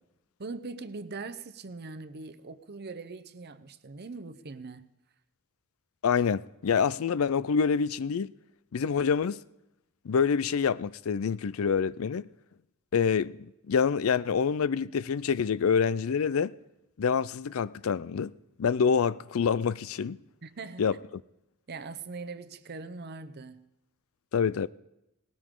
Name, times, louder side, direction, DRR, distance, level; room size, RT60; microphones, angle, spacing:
voice 1, 0.4-4.9 20.4-21.0 21.7-23.7, right 3 dB, 50° right, 0.8 m, -41 dB
voice 2, 6.0-8.3 8.7-9.4 10.0-12.3 12.9-16.5 17.0-18.3 18.6-20.2 20.8-21.0 24.3-24.7, left 6 dB, 75° left, 0.4 m, -26 dB
19.0 x 18.0 x 3.8 m
head